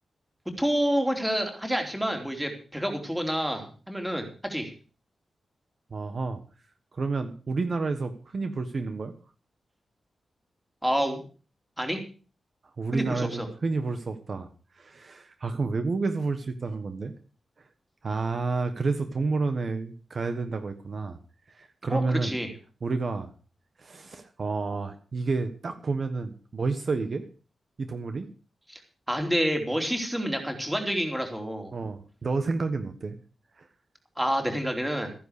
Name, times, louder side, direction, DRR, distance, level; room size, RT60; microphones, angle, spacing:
voice 1, 0.6-4.7 10.8-11.2 11.8-12.0 12.9-13.5 21.8-22.5 28.7-28.8 29.1-31.8 34.2-35.1, equal, 5° right, 4 dB, 3.2 m, -28 dB
voice 2, 5.9-6.4 6.9-9.1 12.8-14.5 14.8-17.1 18.0-21.2 21.5-22.3 22.8-23.3 23.8-27.2 27.8-28.3 31.7-33.1 33.6-33.7, right 3 dB, 45° right, 8 dB, 1.4 m, -30 dB
14.5 x 10.5 x 6.6 m, 0.38 s
wide cardioid pair, 150°, 0 cm